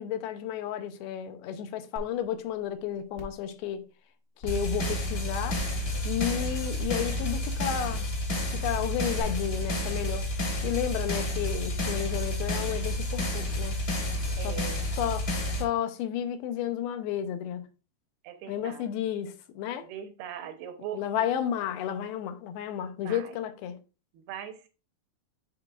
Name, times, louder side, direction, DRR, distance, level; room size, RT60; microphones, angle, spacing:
voice 1, 0.0-3.8 4.4-5.6 6.0-8.1 8.5-13.8 14.4-14.6 14.9-17.6 18.5-19.9 20.9-23.8, left 10 dB, 80° left, 2.6 m, -32 dB
sound 1, 2.0-2.1 2.5-2.6 3.1-3.4 4.4-4.5 5.5-5.8 6.8-6.9 7.9-8.1 9.2-9.3, right 1 dB, 55° left, 1.4 m, -41 dB
sound 2, 4.5-15.6, left 1 dB, 35° left, 1.5 m, -30 dB
voice 2, 14.4-14.9 18.2-18.9 19.8-21.0 23.0-23.4 24.1-24.7, right 9 dB, 85° right, 2.9 m, -40 dB
11.0 x 3.8 x 2.4 m
omnidirectional pair, 4.4 m